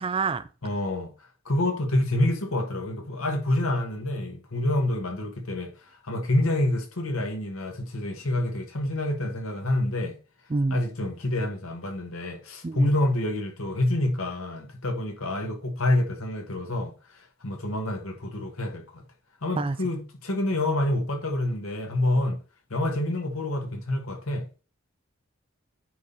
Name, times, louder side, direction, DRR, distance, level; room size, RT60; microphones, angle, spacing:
voice 1, 0.0-0.4 10.5-10.8 12.6-12.9 19.6-19.8, right 3 dB, 25° right, 0.3 m, -26 dB
voice 2, 0.6-1.1 1.5-5.7 6.0-10.1 10.7-19.0 19.4-22.4 22.7-24.4, left 1 dB, 75° left, 1.7 m, -27 dB
9.4 x 3.8 x 4.2 m
head